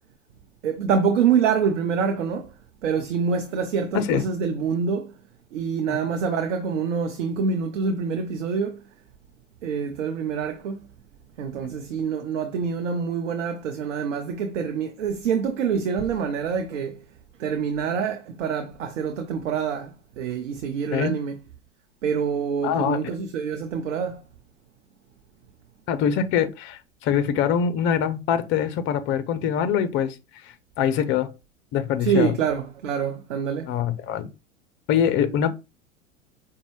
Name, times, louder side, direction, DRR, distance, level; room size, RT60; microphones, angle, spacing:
voice 1, 0.6-2.5 2.8-5.1 5.5-8.8 9.6-10.9 11.4-17.0 17.4-21.4 22.0-24.2 32.0-33.7, right 6 dB, 65° right, 0.7 m, -26 dB
voice 2, 22.6-23.1 25.9-30.2 30.4-31.3 31.7-32.4 33.7-34.3 34.9-35.5, left 8 dB, 30° left, 0.5 m, -24 dB
5.2 x 2.2 x 3.1 m
figure-of-eight pair, 90°, 38 cm